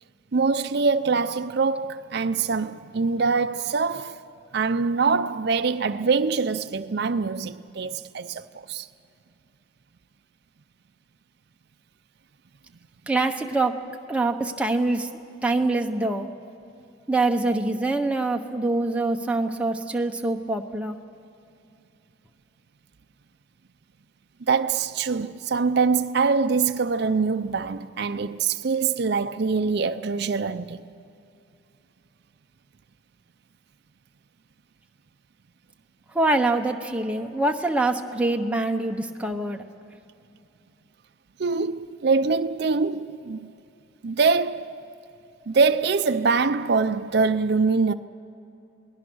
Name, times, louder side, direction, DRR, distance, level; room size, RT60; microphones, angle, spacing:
voice 1, 0.3-4.2 4.5-8.9 24.5-30.8 41.4-43.5 44.0-44.8 45.5-47.9, right 4 dB, 55° right, 0.5 m, -24 dB
voice 2, 13.1-13.8 14.1-15.1 15.4-16.3 17.1-21.0 36.1-39.6, right 2 dB, 5° right, 0.9 m, -24 dB
28.0 x 19.0 x 6.3 m
head